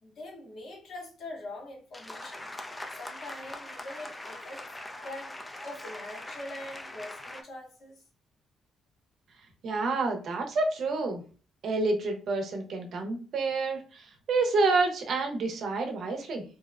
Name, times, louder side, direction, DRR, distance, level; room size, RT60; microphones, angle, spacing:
voice 1, 0.0-2.5 3.0-4.6 5.0-8.0, left 2 dB, 60° left, 0.9 m, -43 dB
sound 1, 1.9-7.4, left 1 dB, 15° left, 0.3 m, -42 dB
voice 2, 9.6-11.2 11.6-16.4, right 3 dB, 65° right, 0.6 m, -28 dB
2.7 x 2.0 x 2.4 m
cardioid pair, 90°, 0 cm